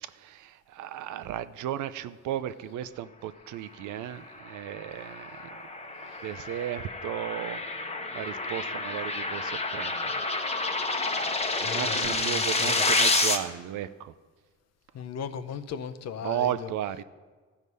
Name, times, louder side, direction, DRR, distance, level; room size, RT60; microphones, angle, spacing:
voice 1, 0.1-5.6 6.0-7.6 8.1-10.2 11.6-14.1 16.2-17.0, right 11 dB, 80° right, 14 dB, 0.5 m, -35 dB
sound 1, 4.5-13.4, left 3 dB, 20° left, 0.9 m, -29 dB
voice 2, 11.4-12.8 14.9-16.7, left 7 dB, 60° left, 10 dB, 0.7 m, -37 dB
14.0 x 4.9 x 5.4 m, 1.4 s
cardioid pair, 90°, 30 cm